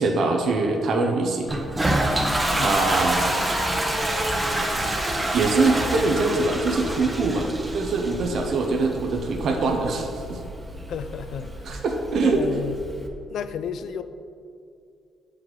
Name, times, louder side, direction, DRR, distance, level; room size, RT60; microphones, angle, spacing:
voice 1, 0.0-1.5 2.6-3.3 5.3-10.4 11.6-12.4, right 3 dB, 70° right, 2 dB, 0.7 m, -23 dB
Toilet flush, 1.5-13.1, right 1 dB, 20° right, 0.9 m, -28 dB
sound 1, 2.0-7.6, left 2 dB, 35° left, 0.7 m, -33 dB
voice 2, 10.9-11.8 12.2-12.8 13.3-14.0, left 8 dB, 75° left, 11 dB, 0.3 m, -33 dB
7.5 x 4.8 x 3.8 m, 2.4 s
cardioid pair, 75°, 0 cm